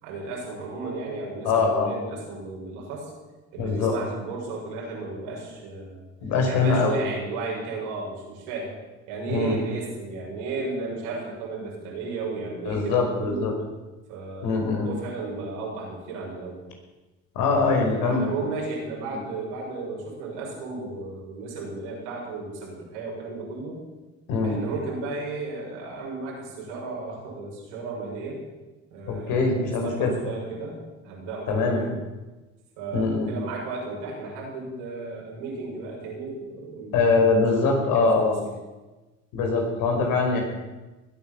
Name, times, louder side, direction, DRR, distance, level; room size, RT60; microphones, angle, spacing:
voice 1, 0.0-3.1 3.5-6.0 6.5-8.7 9.1-13.4 14.1-16.6 17.4-23.8 24.4-28.4 28.9-31.9 32.8-38.1 38.4-38.5, right 3 dB, 85° right, -3 dB, 6.8 m, -34 dB
voice 2, 1.4-1.9 3.6-3.9 6.2-6.9 9.3-9.6 12.6-13.5 14.4-14.9 17.3-18.3 24.3-24.6 29.1-30.1 31.5-31.8 32.9-33.3 36.9-38.3 39.3-40.4, left 4 dB, 75° left, 2 dB, 5.1 m, -23 dB
20.5 x 9.3 x 7.1 m, 1.2 s
hypercardioid pair, 70°, 33 cm